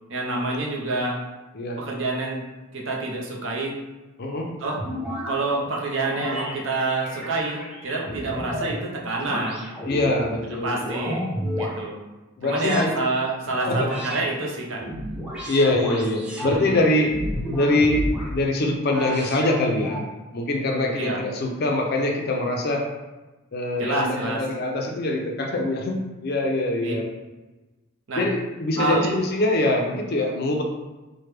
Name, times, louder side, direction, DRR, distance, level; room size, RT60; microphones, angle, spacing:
voice 1, 0.1-1.2 1.8-2.4 2.7-3.8 4.6-4.8 5.3-9.7 10.5-11.3 11.5-12.0 12.4-14.9 16.5-16.8 20.9-21.2 23.8-24.4 26.8-26.9 28.1-28.3 28.8-29.2, right 2 dB, 65° right, -1 dB, 0.6 m, -27 dB
voice 2, 4.2-4.5 9.8-10.8 12.4-13.0 13.7-13.9 15.5-17.2 17.5-20.0 20.3-22.9 23.5-27.1 28.2-30.6, left 2 dB, 50° left, 1 dB, 0.4 m, -24 dB
sound 1, 4.6-5.3 6.0-6.5 7.0-8.8 9.2-10.1 10.6-11.8 12.4-13.0 13.6-14.2 14.7-16.6 17.1-18.3 18.8-20.1, equal, 5° right, 0.6 m, -31 dB
3.2 x 2.1 x 3.3 m, 1.1 s
head